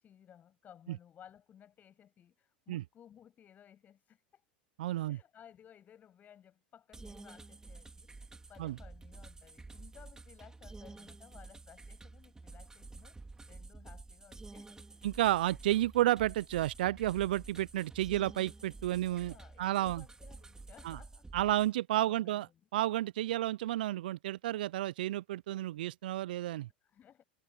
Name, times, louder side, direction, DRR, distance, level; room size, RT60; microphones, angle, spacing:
voice 1, 0.0-4.4 5.1-13.2 13.5-14.8 19.0-21.6 22.0-22.5 26.8-27.2, left 9 dB, 35° left, 7.8 m, -59 dB
voice 2, 4.8-5.2 8.6-8.8 15.0-20.0 20.8-21.0 21.3-22.5 22.7-26.7, right 14 dB, 70° right, 0.6 m, -31 dB
sound 1, 6.9-21.7, right 3 dB, 10° right, 4.2 m, -51 dB
figure-of-eight pair, 85°, 5 cm